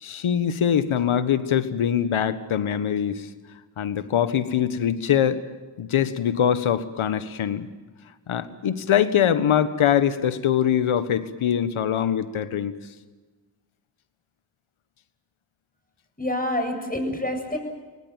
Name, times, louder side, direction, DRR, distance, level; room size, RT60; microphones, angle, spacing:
voice 1, 0.0-3.3 3.8-5.4 5.8-7.7 8.3-12.7, left 9 dB, 70° left, 12 dB, 1.6 m, -23 dB
voice 2, 16.2-17.6, left 1 dB, 15° left, 5 dB, 7.9 m, -27 dB
25.0 x 18.5 x 9.1 m, 1.3 s
supercardioid pair, 40°, 49 cm